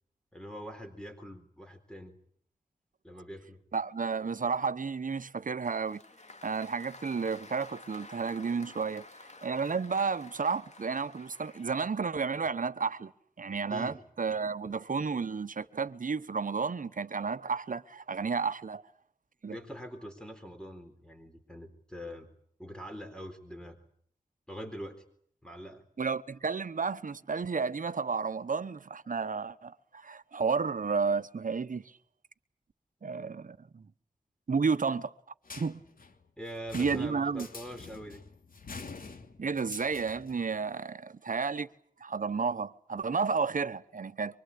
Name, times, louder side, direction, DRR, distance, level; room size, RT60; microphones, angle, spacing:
voice 1, 0.3-2.1 3.0-3.6 13.7-14.0 19.5-22.3 22.6-23.8 24.5-25.0 25.4-25.8 36.4-38.2, equal, 5° left, 4.0 m, -44 dB
voice 2, 3.7-6.0 6.4-13.1 13.4-18.8 19.4-19.6 26.0-31.8 33.0-33.8 34.5-35.1 35.6-35.8 36.7-37.5 39.4-41.7 42.0-44.4, right 5 dB, 65° right, 1.1 m, -32 dB
Applause, 5.6-12.0, left 2 dB, 50° left, 2.9 m, -52 dB
sound 1, 35.5-40.4, left 4 dB, 75° left, 3.0 m, -46 dB
25.0 x 24.5 x 8.6 m
cardioid pair, 50°, 15 cm